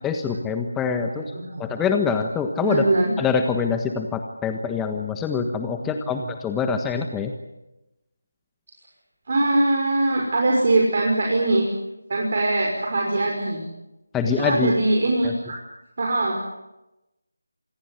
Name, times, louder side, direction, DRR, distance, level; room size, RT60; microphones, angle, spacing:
voice 1, 0.0-1.3 1.6-2.9 3.2-7.3 14.1-14.7 15.2-15.3, left 5 dB, 10° left, 6 dB, 1.3 m, -25 dB
voice 2, 1.0-1.9 2.6-3.1 5.8-6.3 9.3-11.7 12.1-13.6 14.4-15.6 16.0-16.3, right 2 dB, 45° right, 0 dB, 5.9 m, -22 dB
27.0 x 19.5 x 9.8 m, 0.96 s
figure-of-eight pair, 165°, 0 cm